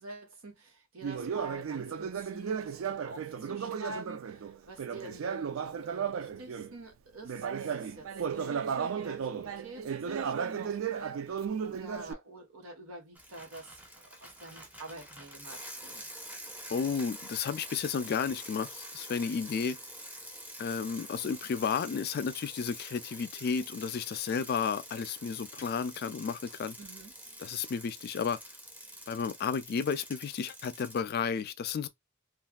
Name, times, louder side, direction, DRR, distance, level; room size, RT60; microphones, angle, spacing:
voice 1, 0.0-16.1 26.8-27.4, right 2 dB, 90° right, 1.3 m, -47 dB
Conversation, 1.0-6.8 7.2-12.1, right 7 dB, 70° right, 0.4 m, -35 dB
Bicycle, 13.1-31.0, equal, 10° right, 0.6 m, -47 dB
voice 2, 16.7-19.8 20.6-26.8 27.4-28.4 29.1-31.9, left 6 dB, 50° left, 0.3 m, -32 dB
3.2 x 2.3 x 2.3 m
head